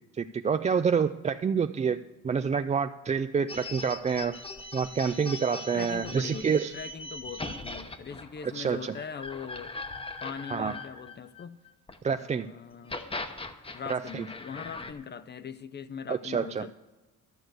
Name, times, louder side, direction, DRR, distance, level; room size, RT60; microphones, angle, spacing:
voice 1, 0.1-4.4 4.7-6.7 8.5-8.9 10.5-10.7 12.0-12.5 13.9-14.2 16.1-16.7, right 6 dB, 25° right, 0.3 m, -28 dB
sound 1, 3.5-12.0 12.7-14.9, left 2 dB, 20° left, 1.0 m, -40 dB
voice 2, 5.7-9.8 10.2-11.6 12.1-13.0 13.7-16.7, left 7 dB, 35° left, 0.5 m, -41 dB
12.0 x 6.3 x 7.9 m
cardioid pair, 90°, 30 cm